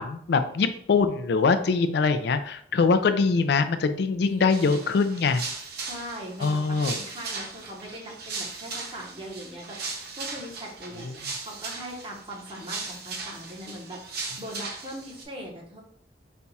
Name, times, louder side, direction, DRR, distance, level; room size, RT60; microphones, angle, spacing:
voice 1, 0.0-5.4 6.4-7.0, left 4 dB, 65° left, 9 dB, 0.4 m, -23 dB
voice 2, 4.1-4.9 5.8-6.6 6.9-9.8 10.2-15.8, equal, 30° right, -1 dB, 1.0 m, -40 dB
sound 1, 4.5-15.2, right 4 dB, 60° right, 0.8 m, -38 dB
4.3 x 2.3 x 4.0 m, 0.63 s
head